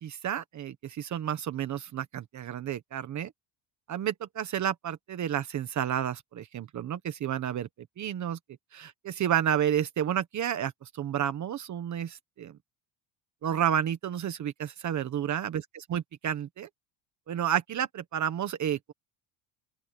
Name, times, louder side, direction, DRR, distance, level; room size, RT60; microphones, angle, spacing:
voice 1, 0.0-3.3 3.9-7.7 8.0-8.4 8.7-12.6 13.4-16.7 17.3-18.9, right 10 dB, 35° right, 1.2 m, -31 dB
open air
cardioid pair, 175°, 48 cm